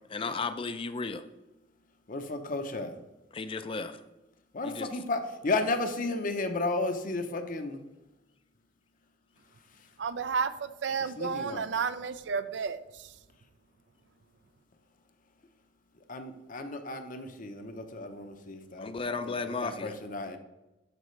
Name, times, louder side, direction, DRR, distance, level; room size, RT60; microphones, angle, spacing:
voice 1, 0.1-1.2 3.3-4.0 4.6-4.9 18.8-19.9, left 4 dB, 30° left, 11 dB, 0.5 m, -34 dB
voice 2, 2.1-3.0 4.5-7.8 11.2-11.6 16.1-18.9 19.3-19.4 19.6-20.4, left 2 dB, 50° left, 7 dB, 0.8 m, -33 dB
voice 3, 10.0-13.1, right 5 dB, 70° right, 13 dB, 0.5 m, -32 dB
12.0 x 5.0 x 3.2 m, 1.0 s
head